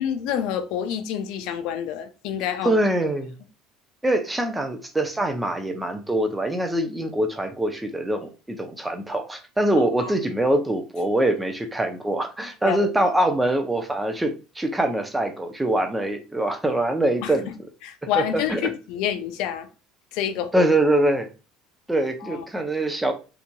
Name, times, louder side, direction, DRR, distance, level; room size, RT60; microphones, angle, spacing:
voice 1, 0.0-2.8 9.8-10.1 12.6-12.9 17.2-17.3 17.8-19.7 20.1-20.7 22.2-22.4, left 9 dB, 70° left, 0.4 m, -28 dB
voice 2, 2.6-3.3 4.0-17.5 18.0-18.6 20.5-21.3 21.9-23.1, right 1 dB, 10° right, 0.5 m, -24 dB
2.9 x 2.6 x 2.2 m
supercardioid pair, 125°, 0 cm